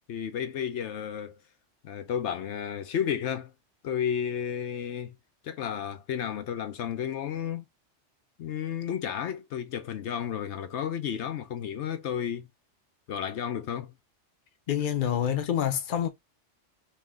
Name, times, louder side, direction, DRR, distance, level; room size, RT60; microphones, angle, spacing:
voice 1, 0.1-1.4 1.8-3.5 3.8-5.2 5.4-7.6 8.4-12.5 13.1-13.9, left 8 dB, 75° left, 0.9 m, -32 dB
voice 2, 14.7-16.1, left 9 dB, 50° left, 0.8 m, -27 dB
3.1 x 3.1 x 3.5 m
omnidirectional pair, 1.2 m